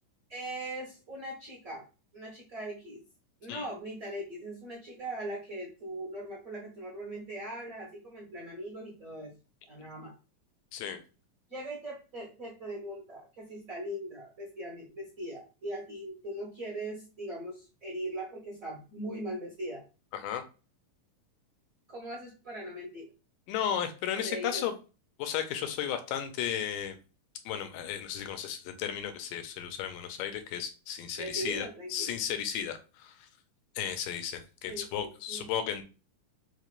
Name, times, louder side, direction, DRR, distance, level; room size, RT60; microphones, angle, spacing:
voice 1, 0.3-1.8 2.1-3.0 3.4-9.3 9.7-10.1 11.5-19.8 21.9-23.1 24.1-24.7 31.2-32.1 34.7-35.5, right 1 dB, 65° right, -3 dB, 0.8 m, -40 dB
voice 2, 20.1-20.4 23.5-24.7 25.2-27.0 27.5-33.3 33.8-35.8, left 9 dB, 90° left, 7 dB, 2.2 m, -34 dB
5.0 x 3.1 x 2.5 m, 0.32 s
omnidirectional pair, 3.7 m